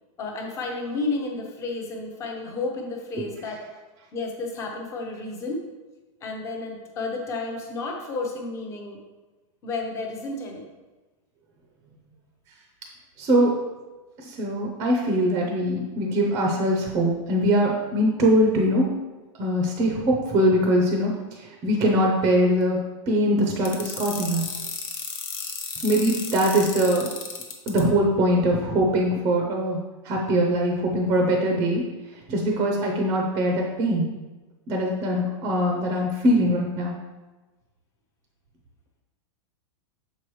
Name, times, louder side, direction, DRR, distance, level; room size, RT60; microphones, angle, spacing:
voice 1, 0.2-3.7 4.1-5.6 6.2-9.0 9.6-10.7, left 3 dB, 15° left, 2 dB, 0.7 m, -31 dB
voice 2, 13.2-13.6 14.2-18.9 19.4-24.5 25.8-27.1 27.7-29.8 30.0-31.8 32.3-34.1 34.7-37.0, equal, 20° right, 1 dB, 0.5 m, -22 dB
sound 1, 23.6-27.8, left 6 dB, 75° left, 1.1 m, -33 dB
6.8 x 4.7 x 3.1 m, 1.2 s
supercardioid pair, 170°, 17 cm